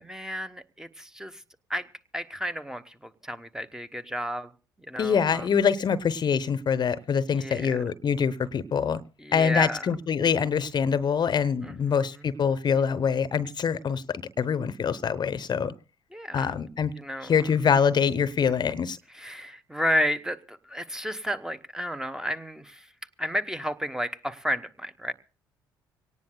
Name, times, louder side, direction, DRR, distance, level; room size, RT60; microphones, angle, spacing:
voice 1, 0.0-1.4 1.7-4.5 4.8-5.5 7.3-7.8 9.2-9.9 11.6-12.2 16.1-16.5 17.0-17.5 19.1-22.9 23.2-25.1, equal, 5° right, 11 dB, 1.1 m, -32 dB
voice 2, 5.0-9.0 9.3-15.7 16.3-16.9 17.2-19.0, left 7 dB, 40° left, 16 dB, 0.8 m, -25 dB
25.0 x 18.0 x 2.2 m, 0.36 s
figure-of-eight pair, 50°, 11 cm